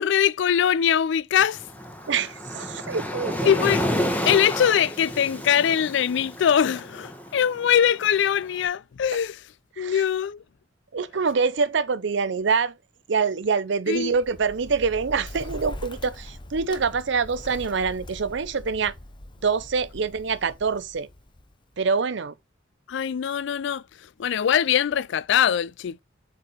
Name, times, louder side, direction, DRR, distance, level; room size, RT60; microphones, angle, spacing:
voice 1, 0.0-1.6 3.4-3.9 4.2-9.4 9.8-10.4 13.9-14.1 22.9-26.0, left 8 dB, 70° left, 0.3 m, -22 dB
Waves surf, 1.4-8.5, equal, 10° left, 1.3 m, -31 dB
voice 2, 2.1-3.6 9.8-10.0 10.9-12.7 13.1-18.9 19.4-21.1 21.8-22.3, right 5 dB, 70° right, 0.6 m, -25 dB
Bird, 14.0-21.8, left 1 dB, 25° left, 0.8 m, -42 dB
7.7 x 4.2 x 3.0 m
head